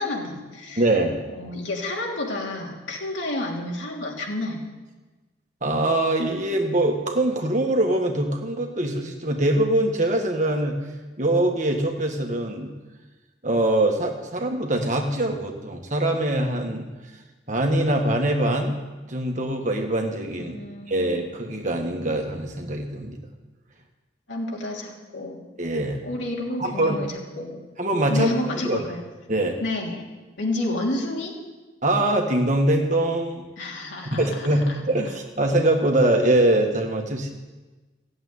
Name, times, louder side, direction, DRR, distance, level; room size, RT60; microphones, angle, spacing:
voice 1, 0.0-0.9 1.4-4.7 20.4-21.1 24.3-25.4 26.0-27.6 28.1-29.0 29.6-30.0 30.4-31.3 33.6-34.8, left 2 dB, 85° left, -1 dB, 3.1 m, -30 dB
voice 2, 0.8-1.2 5.6-10.7 11.2-12.7 13.4-16.9 17.5-18.7 19.1-20.6 20.9-23.2 25.6-26.0 26.6-27.0 27.8-28.3 28.6-28.8 29.3-29.6 31.8-33.5 34.1-37.3, right 1 dB, 40° right, 2 dB, 1.8 m, -23 dB
15.0 x 8.0 x 9.7 m, 1.2 s
head